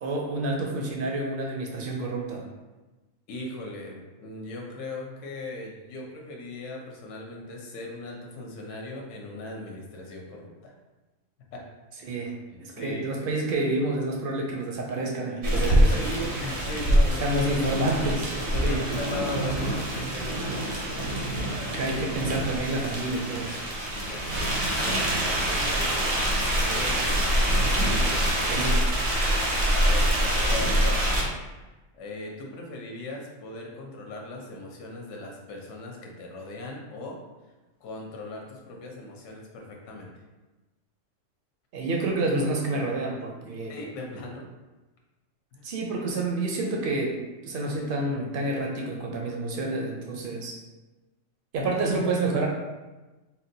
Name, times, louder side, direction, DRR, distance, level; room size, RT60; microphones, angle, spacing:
voice 1, 0.0-2.4 12.0-15.9 17.2-18.3 18.6-18.8 21.7-23.6 28.4-28.8 41.7-43.8 45.6-50.6 51.5-52.5, right 2 dB, 65° right, 0 dB, 0.5 m, -29 dB
voice 2, 3.3-10.7 11.5-11.6 12.5-13.1 13.4-13.5 15.5-17.4 18.5-21.9 23.9-27.3 27.6-28.7 29.8-31.2 31.9-37.2 37.8-40.2 43.7-44.5 45.5-45.7 51.6-51.7, left 2 dB, 70° left, 0 dB, 0.9 m, -39 dB
sound 1, 15.4-31.2, right 1 dB, 90° right, 1.1 m, -25 dB
3.8 x 2.1 x 2.6 m, 1.1 s
omnidirectional pair, 1.4 m